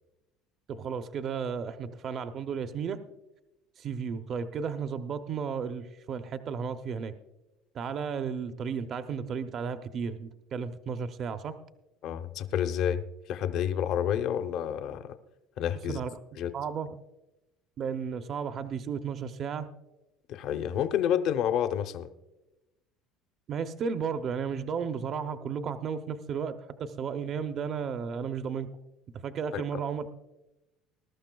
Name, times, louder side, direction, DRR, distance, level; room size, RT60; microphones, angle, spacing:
voice 1, 0.7-3.0 3.8-7.1 7.7-11.6 15.9-16.2 16.5-16.9 17.8-19.7 23.5-28.7 29.2-30.1, right 6 dB, 35° right, 9 dB, 0.6 m, -33 dB
voice 2, 12.0-15.1 15.6-16.0 16.4-16.5 20.3-22.1 29.5-29.6, left 9 dB, 50° left, 9 dB, 0.7 m, -29 dB
20.5 x 12.5 x 2.3 m, 0.98 s
cardioid pair, 165°, 0 cm